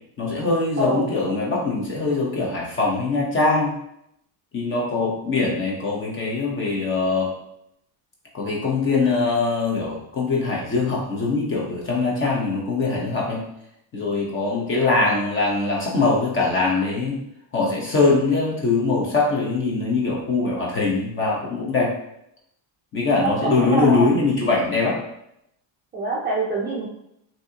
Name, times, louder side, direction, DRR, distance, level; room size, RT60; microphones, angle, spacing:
voice 1, 0.2-3.7 4.5-7.3 8.3-13.4 13.9-17.2 17.5-21.9 22.9-25.0, left 3 dB, 25° left, -3 dB, 0.9 m, -22 dB
voice 2, 23.2-24.1 25.9-26.9, right 2 dB, 20° right, -6 dB, 0.5 m, -25 dB
5.9 x 2.9 x 2.8 m, 0.78 s
cardioid pair, 180°, 48 cm